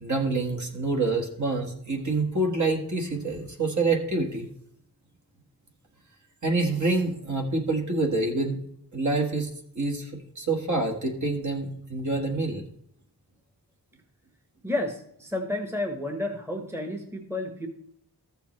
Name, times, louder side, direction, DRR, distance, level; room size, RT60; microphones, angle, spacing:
voice 1, 0.0-4.5 6.4-8.6 8.9-9.5 9.7-10.1 10.3-12.6, right 3 dB, 45° right, 1 dB, 1.6 m, -27 dB
voice 2, 14.6-17.7, left 1 dB, 5° right, 4 dB, 1.2 m, -31 dB
14.5 x 6.8 x 3.2 m, 0.71 s
wide cardioid pair, 105°, 40 cm